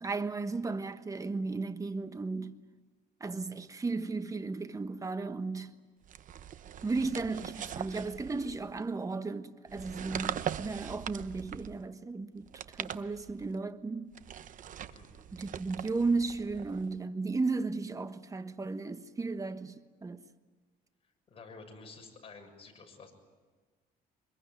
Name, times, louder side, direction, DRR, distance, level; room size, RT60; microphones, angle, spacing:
voice 1, 0.0-2.6 3.2-5.8 6.8-14.1 15.3-20.2, right 3 dB, 20° right, 1.3 m, -35 dB
sound 1, 6.1-8.8 9.7-11.9 12.4-13.6 14.1-17.0, right 9 dB, 50° right, 1.0 m, -41 dB
voice 2, 21.3-23.1, left 4 dB, 35° left, 6.8 m, -51 dB
24.5 x 22.0 x 9.5 m
cardioid pair, 110°, 17 cm